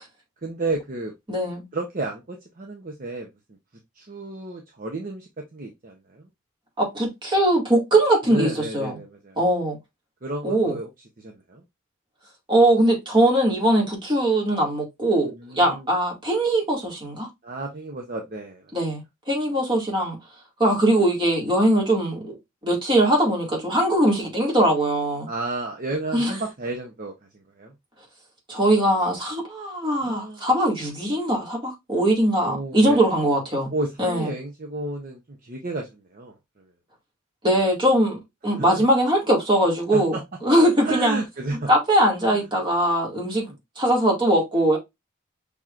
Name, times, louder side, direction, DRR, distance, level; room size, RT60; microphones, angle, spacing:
voice 1, 0.4-1.1 1.7-3.3 3.9-6.3 8.2-9.4 10.2-10.9 11.2-11.6 15.3-15.9 17.4-18.6 25.3-27.7 30.0-30.5 32.4-33.1 33.7-36.3 38.6-38.7 39.9-40.2 40.8-41.7 42.3-42.4 43.5-43.6, right 2 dB, 40° right, 0.8 m, -32 dB
voice 2, 1.3-1.6 6.8-8.9 9.4-9.8 10.4-10.8 12.5-17.3 18.7-19.0 19.3-20.2 20.6-22.4 22.6-25.3 26.1-26.3 28.5-33.7 34.0-34.3 37.4-40.1 40.4-41.2 41.7-44.8, right 1 dB, 25° right, 2.0 m, -21 dB
6.0 x 3.6 x 2.4 m
head